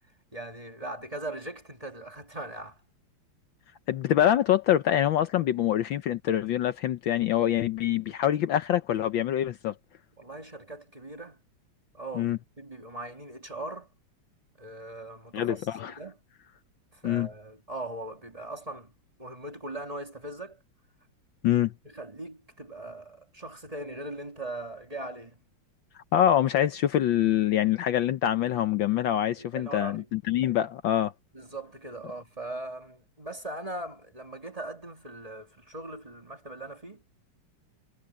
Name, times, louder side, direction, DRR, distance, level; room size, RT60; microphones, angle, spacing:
voice 1, 0.3-2.8 10.2-11.4 11.9-13.9 14.6-15.7 16.0-16.2 16.9-18.9 19.2-20.6 21.8-25.4 29.4-30.1 31.3-37.0, right 2 dB, 15° right, 2.1 m, -40 dB
voice 2, 3.9-9.7 12.2-12.4 15.3-15.9 17.0-17.3 21.4-21.7 26.1-31.1, left 11 dB, 70° left, 1.4 m, -25 dB
omnidirectional pair, 2.4 m